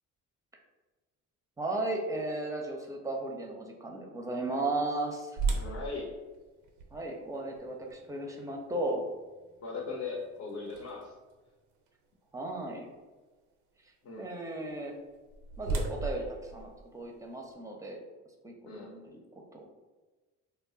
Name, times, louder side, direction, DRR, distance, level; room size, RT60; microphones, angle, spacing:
voice 1, 1.6-5.4 6.9-9.0 12.3-12.9 13.8-14.9 15.6-18.0 18.4-19.7, right 2 dB, 10° right, 2 dB, 0.6 m, -35 dB
sound 1, 5.4-11.3 11.9-12.0 12.6-12.8 14.9-17.5, right 3 dB, 90° right, 0.5 m, -38 dB
voice 2, 5.5-6.1 9.6-11.1 14.0-14.2 18.6-18.9, left 4 dB, 50° left, -3 dB, 0.7 m, -38 dB
2.2 x 2.0 x 3.7 m, 1.2 s
hypercardioid pair, 65°, 35 cm